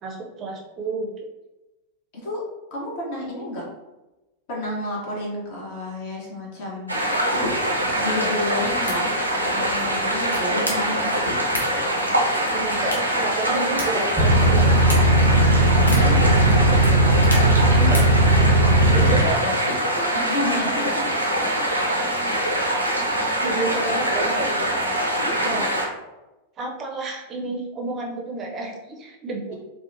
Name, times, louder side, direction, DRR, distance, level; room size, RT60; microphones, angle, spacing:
voice 1, 0.0-1.1 12.5-14.8 17.8-18.0 18.9-19.4 23.4-24.6 25.4-25.7 26.6-29.5, right 3 dB, 30° right, 0 dB, 0.5 m, -30 dB
voice 2, 2.7-3.6 4.5-6.9 7.9-9.0 9.3-11.0 15.9-16.2 19.0-19.5 20.2-21.1 22.2-22.7 25.3-25.7, left 1 dB, 50° left, -3 dB, 0.8 m, -31 dB
sound 1, 6.9-25.9, right 1 dB, 85° right, 0.4 m, -24 dB
sound 2, 7.3-20.2, left 1 dB, 80° left, 0.6 m, -36 dB
sound 3, 14.2-19.2, right 1 dB, 10° left, 0.9 m, -17 dB
2.9 x 2.0 x 2.5 m, 1.0 s
figure-of-eight pair, 90°, 0 cm